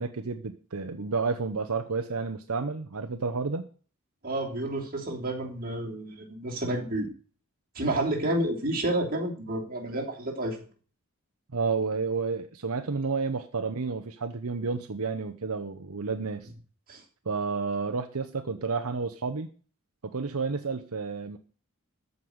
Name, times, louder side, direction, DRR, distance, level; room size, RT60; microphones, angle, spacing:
voice 1, 0.0-3.7 11.5-16.5 17.3-19.5 20.0-21.4, right 4 dB, 75° right, 7 dB, 0.8 m, -31 dB
voice 2, 4.2-7.1 7.7-10.6 16.9-17.0, right 1 dB, 40° right, -1 dB, 3.1 m, -30 dB
14.0 x 5.4 x 8.0 m, 0.41 s
head